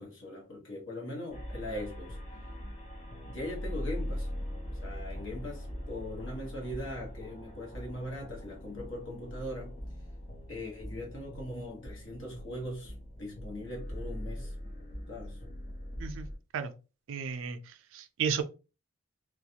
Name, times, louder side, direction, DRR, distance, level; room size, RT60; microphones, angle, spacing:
voice 1, 0.0-2.2 3.2-4.3 4.8-9.8 10.5-14.5 15.1-15.4, left 1 dB, 70° left, 1.1 m, -40 dB
sound 1, 1.3-16.4, equal, 30° left, 0.8 m, -41 dB
voice 2, 17.1-17.6 17.9-18.4, right 6 dB, 70° right, 0.4 m, -32 dB
2.4 x 2.3 x 2.7 m
head